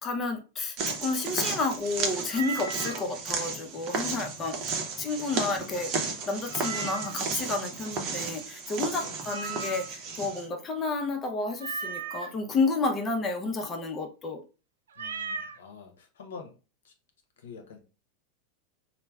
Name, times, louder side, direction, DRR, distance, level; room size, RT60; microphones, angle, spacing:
voice 1, 0.0-4.6 5.0-5.9 6.3-14.4, left 3 dB, 30° left, 0.6 m, -31 dB
sound 1, 0.8-10.5, right 4 dB, 45° right, 0.7 m, -34 dB
Meow, 2.3-3.0 6.5-7.3 9.3-10.1 11.6-12.3 14.9-15.6, right 5 dB, 90° right, 0.3 m, -36 dB
voice 2, 15.0-16.6 16.8-16.9 17.4-17.8, left 5 dB, 85° left, 0.7 m, -46 dB
3.1 x 2.1 x 2.3 m
hypercardioid pair, 110°, 0 cm